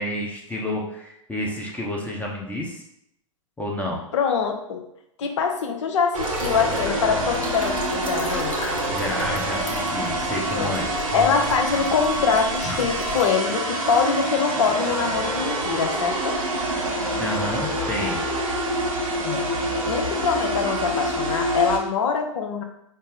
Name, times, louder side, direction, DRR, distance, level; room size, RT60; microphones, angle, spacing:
voice 1, 0.0-2.8 3.6-4.0 8.9-10.9 17.2-18.2, left 1 dB, 10° left, -2 dB, 0.7 m, -30 dB
voice 2, 4.1-4.8 5.2-8.6 10.6-10.8 11.1-16.4 19.2-19.5 19.8-22.6, left 6 dB, 60° left, 4 dB, 0.7 m, -24 dB
sound 1, 6.1-13.3, left 3 dB, 90° left, 1.0 m, -35 dB
sound 2, 6.1-21.8, right 1 dB, 85° right, 0.8 m, -26 dB
5.3 x 2.0 x 3.7 m, 0.77 s
figure-of-eight pair, 100°, 17 cm